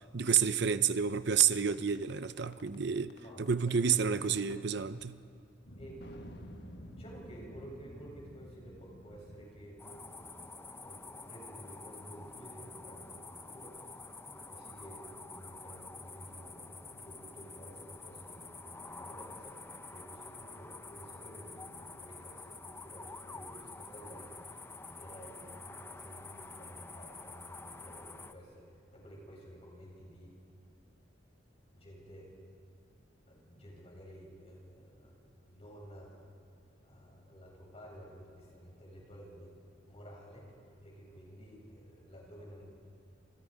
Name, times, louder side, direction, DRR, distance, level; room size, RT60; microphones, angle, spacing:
voice 1, 0.0-5.2, right 7 dB, 65° right, 0.7 m, -30 dB
sound 1, 1.4-4.7 6.0-7.4, left 2 dB, 60° left, 1.4 m, -55 dB
voice 2, 3.1-4.2 5.8-6.4 6.9-10.6 10.8-13.9 14.3-30.3 31.7-32.4 33.3-36.2 36.8-42.6, equal, 35° left, 7.8 m, -52 dB
sound 2, 5.6-10.7, equal, 80° left, 6.5 m, -51 dB
sound 3, 9.8-28.3, left 3 dB, 15° left, 0.8 m, -48 dB
30.0 x 28.5 x 5.2 m
head